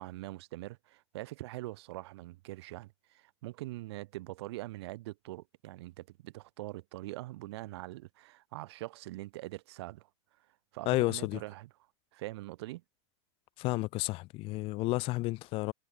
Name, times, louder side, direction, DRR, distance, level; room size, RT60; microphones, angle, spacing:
voice 1, 0.0-11.7 12.1-12.8, right 18 dB, 60° right, 4.4 m, -43 dB
voice 2, 10.9-11.4 13.6-15.7, left 21 dB, 35° left, 2.6 m, -31 dB
supercardioid pair, 155°, 15 cm